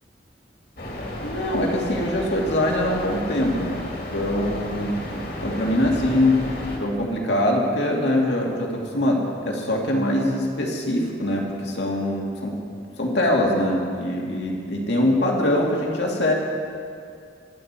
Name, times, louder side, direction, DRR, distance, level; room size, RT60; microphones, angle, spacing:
sound 1, 0.8-6.8, left 1 dB, 60° left, 2.3 m, -33 dB
voice 1, 1.2-5.0 5.4-6.4 6.8-12.6 13.0-16.3, left 1 dB, 85° left, -1 dB, 2.2 m, -23 dB
23.0 x 8.3 x 4.4 m, 2.3 s
head